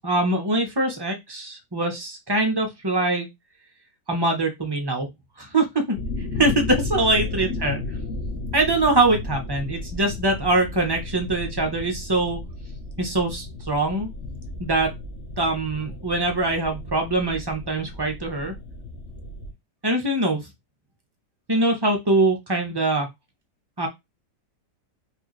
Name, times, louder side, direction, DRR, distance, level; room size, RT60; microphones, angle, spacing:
voice 1, 0.0-3.3 4.1-5.1 5.4-6.0 6.3-7.8 8.5-12.4 13.0-14.1 14.6-14.9 15.4-18.5 19.8-20.5 21.5-23.1 23.8-23.9, right 2 dB, 25° right, 3 dB, 0.5 m, -23 dB
sound 1, 5.9-19.5, left 3 dB, 50° left, 0.9 m, -34 dB
4.6 x 2.7 x 3.1 m, 0.19 s
omnidirectional pair, 1.8 m